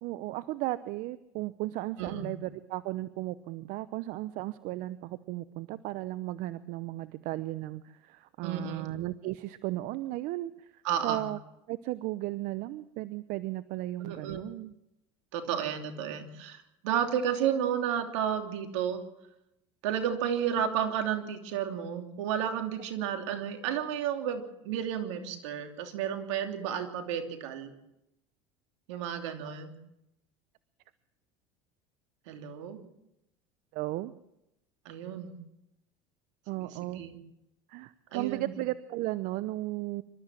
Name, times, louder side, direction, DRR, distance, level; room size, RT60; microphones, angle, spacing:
voice 1, 0.0-11.4 11.7-14.7 29.4-29.5 33.7-34.1 36.5-37.0 37.7-40.0, right 17 dB, 65° right, 15 dB, 0.8 m, -35 dB
voice 2, 2.0-2.3 8.4-8.9 10.8-11.3 14.0-14.4 15.3-19.0 19.8-27.7 28.9-29.7 32.3-32.8 34.8-35.4 36.5-37.2 38.1-38.5, right 9 dB, 80° right, 6 dB, 3.1 m, -32 dB
26.0 x 13.5 x 7.6 m, 0.86 s
supercardioid pair, 95°, 15 cm